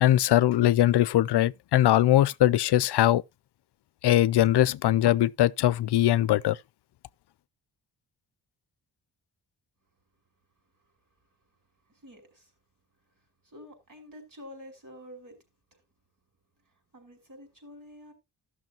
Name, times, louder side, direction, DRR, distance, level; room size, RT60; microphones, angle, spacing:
voice 1, 0.0-3.2 4.0-6.6, left 13 dB, 70° left, 0.5 m, -21 dB
voice 2, 10.7-12.5 13.0-15.4 15.7-15.8 16.6-18.1, left 1 dB, 50° right, 5.3 m, -50 dB
14.5 x 6.3 x 2.9 m
wide cardioid pair, 120°, 42 cm